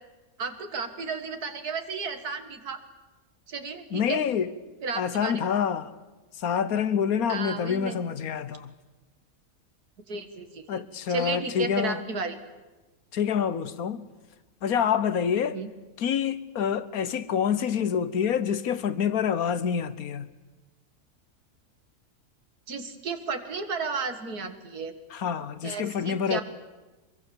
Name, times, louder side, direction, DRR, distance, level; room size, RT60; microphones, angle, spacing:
voice 1, 0.4-2.8 3.5-4.2 4.8-5.4 7.3-8.0 10.1-10.8 11.1-12.4 15.5-15.7 22.7-24.9 25.6-26.4, right 5 dB, 90° right, 2.3 m, -33 dB
voice 2, 3.9-4.5 5.0-5.9 6.4-8.7 10.7-12.0 13.1-14.1 14.6-15.6 16.0-20.3 25.1-26.4, left 7 dB, 70° left, 1.4 m, -27 dB
24.5 x 22.5 x 7.1 m
omnidirectional pair, 1.6 m